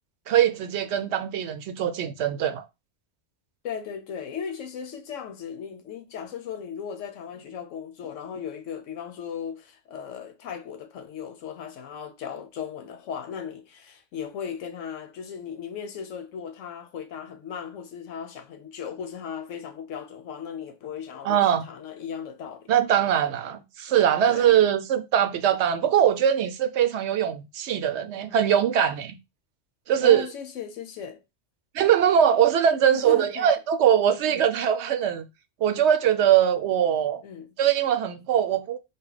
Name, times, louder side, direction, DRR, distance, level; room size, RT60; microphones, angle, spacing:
voice 1, 0.3-2.6 21.2-21.7 22.7-29.2 29.9-30.3 31.7-35.3 35.6-37.2 37.6-38.8, right 9 dB, 70° right, 0.8 m, -22 dB
voice 2, 3.6-22.7 24.3-24.5 30.0-31.2 32.9-33.5 34.3-34.5 37.2-37.6, left 7 dB, 85° left, 1.1 m, -37 dB
3.9 x 2.3 x 3.8 m
omnidirectional pair, 1.3 m